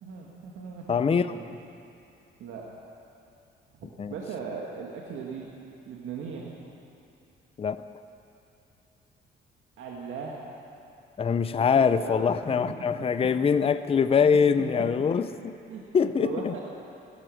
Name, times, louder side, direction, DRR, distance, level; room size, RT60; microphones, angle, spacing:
voice 1, 0.0-1.5 2.4-2.7 3.7-5.5 5.9-6.5 9.8-10.6 11.6-12.7 14.2-14.9 15.7-16.6, right 5 dB, 80° right, -2 dB, 1.7 m, -38 dB
voice 2, 0.9-1.3 4.0-4.1 7.6-7.8 11.2-15.3 15.9-16.5, left 6 dB, 30° left, 12 dB, 0.5 m, -23 dB
16.0 x 12.5 x 6.3 m, 2.7 s
cardioid pair, 90°, 20 cm